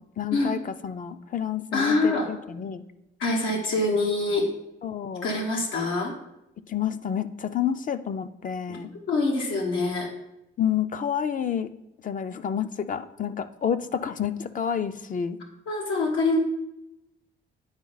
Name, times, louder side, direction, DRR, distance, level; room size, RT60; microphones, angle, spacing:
voice 1, 0.2-2.8 4.8-5.3 6.7-8.9 10.6-11.7 12.0-15.4, left 8 dB, 40° left, 10 dB, 0.5 m, -29 dB
voice 2, 1.7-2.3 3.2-4.5 5.2-6.1 8.7-10.1 15.7-16.4, left 2 dB, 90° left, -1 dB, 1.3 m, -25 dB
9.6 x 4.5 x 4.0 m, 0.88 s
cardioid pair, 90°, 20 cm